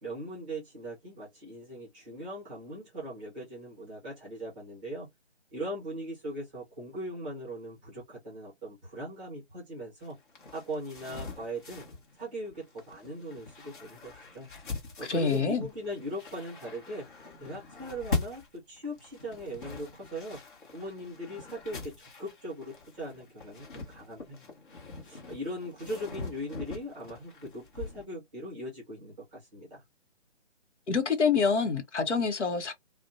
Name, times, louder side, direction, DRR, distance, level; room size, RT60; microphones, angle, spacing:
voice 1, 0.0-5.1 5.5-10.2 10.5-11.8 12.2-14.5 15.0-17.1 17.4-20.4 20.7-24.4 25.0-29.8, equal, 5° right, 0.6 m, -39 dB
sound 1, 10.0-28.0, left 3 dB, 45° left, 0.9 m, -42 dB
voice 2, 15.1-15.7 30.9-32.7, left 5 dB, 75° left, 0.8 m, -26 dB
2.5 x 2.1 x 2.4 m
figure-of-eight pair, 150°, 35 cm